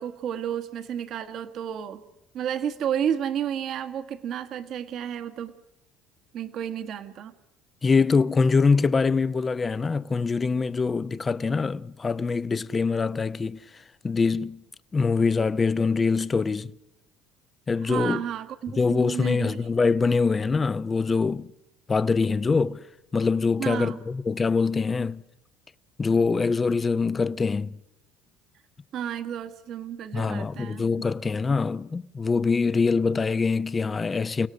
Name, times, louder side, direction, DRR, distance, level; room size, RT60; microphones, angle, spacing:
voice 1, 0.0-2.0 2.3-5.5 6.3-7.3 17.8-19.7 23.6-24.0 28.9-30.8, right 9 dB, 60° right, 1.6 m, -31 dB
voice 2, 7.8-13.6 14.0-14.6 14.9-16.7 17.7-18.2 18.8-21.5 21.9-22.8 23.1-25.2 26.0-27.8 30.1-34.5, left 4 dB, 25° left, 0.8 m, -24 dB
29.5 x 17.5 x 6.3 m
supercardioid pair, 105°, 0 cm